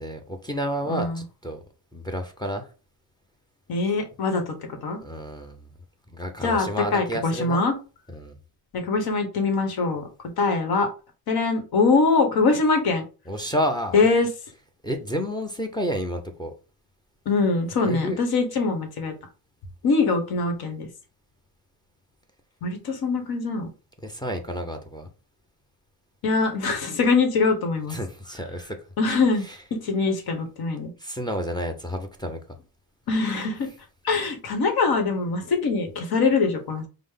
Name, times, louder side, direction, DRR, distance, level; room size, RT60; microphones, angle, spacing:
voice 1, 0.0-1.6 1.9-2.7 5.0-5.7 6.1-7.6 8.1-8.4 13.3-14.0 14.8-16.5 17.9-18.2 24.0-25.1 27.9-28.8 29.4-29.6 31.0-32.4, equal, 10° left, 0.6 m, -30 dB
voice 2, 3.7-4.6 4.8-5.0 6.4-7.7 8.7-10.1 10.4-10.9 11.3-13.0 13.9-14.3 17.3-19.1 19.8-20.9 22.6-23.7 26.2-28.0 29.0-29.4 29.8-30.9 33.1-33.7 34.0-36.9, left 4 dB, 65° left, 1.2 m, -23 dB
5.1 x 2.1 x 3.7 m
cardioid pair, 120°, 40 cm